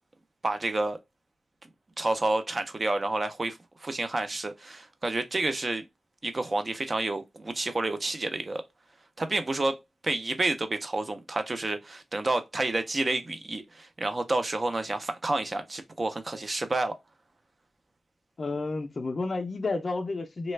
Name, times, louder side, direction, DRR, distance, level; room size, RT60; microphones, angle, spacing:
voice 1, 0.4-1.0 2.0-5.8 6.2-8.6 9.2-9.8 10.0-17.0, right 2 dB, 30° right, 0.4 m, -29 dB
voice 2, 18.4-20.5, left 3 dB, 40° left, 0.4 m, -31 dB
3.2 x 2.1 x 3.1 m
wide cardioid pair, 165°, 0 cm